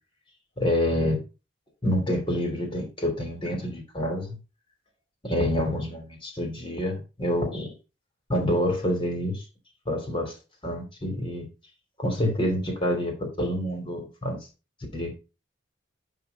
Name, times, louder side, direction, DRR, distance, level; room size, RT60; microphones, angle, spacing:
voice 1, 0.6-1.2 1.8-4.4 5.2-7.7 8.3-9.4 9.9-10.3 10.6-11.5 12.0-14.4 14.9-15.2, left 1 dB, 25° left, 2.9 m, -27 dB
10.5 x 3.8 x 4.0 m
head